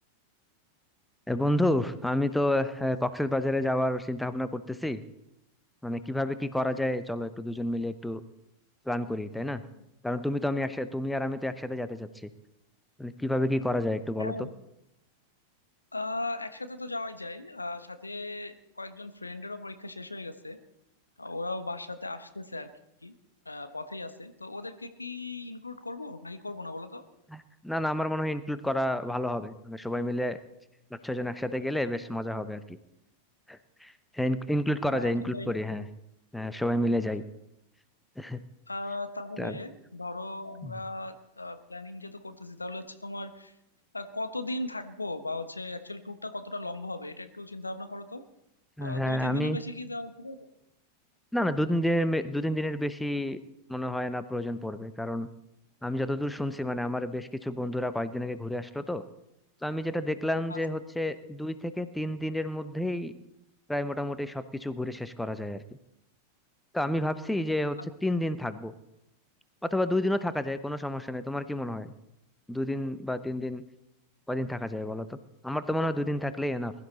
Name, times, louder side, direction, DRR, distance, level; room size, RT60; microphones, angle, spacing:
voice 1, 1.3-5.0 5.8-8.2 8.9-9.6 10.0-12.3 13.0-14.3 27.3-30.4 31.0-32.8 33.5-35.8 36.3-37.2 38.2-38.4 39.4-39.6 40.6-40.7 48.8-49.6 51.3-53.4 53.7-55.3 55.8-59.0 59.6-63.1 63.7-65.6 66.7-67.8 68.0-68.7 69.6-71.9 72.5-73.6 74.3-75.2 75.4-76.7, left 1 dB, 5° left, 12 dB, 0.8 m, -30 dB
voice 2, 9.5-9.8 14.2-14.5 15.9-20.6 21.2-22.7 23.0-23.1 23.4-27.0 34.9-35.5 38.7-43.5 43.9-48.2 48.8-50.5 60.5-60.6, left 2 dB, 80° left, 10 dB, 1.1 m, -38 dB
21.0 x 12.5 x 4.1 m, 0.84 s
figure-of-eight pair, 90°, 0 cm